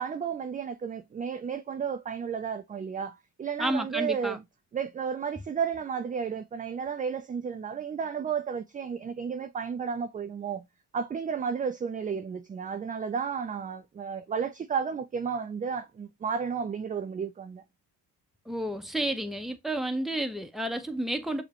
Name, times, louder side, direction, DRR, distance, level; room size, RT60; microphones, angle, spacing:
voice 1, 0.0-4.4 4.7-10.6 10.9-17.6, right 6 dB, 20° right, 0.3 m, -32 dB
voice 2, 3.6-4.4 18.5-21.4, right 1 dB, ahead, 0.7 m, -31 dB
6.5 x 2.2 x 2.8 m
supercardioid pair, 65°, 42 cm